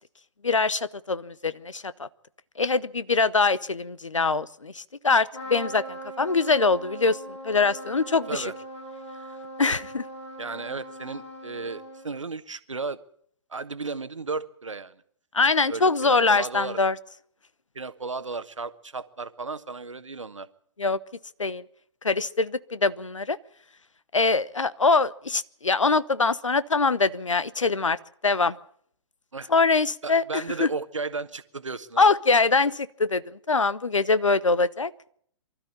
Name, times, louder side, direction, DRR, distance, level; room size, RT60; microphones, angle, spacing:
voice 1, 0.4-2.1 2.6-7.2 7.4-8.5 9.6-10.0 15.3-16.9 20.8-21.0 21.4-21.6 22.0-23.4 24.1-28.0 28.2-28.6 29.5-30.7 32.0-33.2 33.5-34.9, left 4 dB, 85° left, 18 dB, 0.9 m, -23 dB
Trumpet, 5.3-12.2, right 1 dB, 65° left, 7.6 m, -40 dB
voice 2, 10.4-13.0 13.5-15.0 15.7-16.8 17.7-20.5 29.3-29.5 30.0-32.0, right 4 dB, 80° right, 13 dB, 1.3 m, -34 dB
24.0 x 13.0 x 8.8 m, 0.64 s
figure-of-eight pair, 120°, 16 cm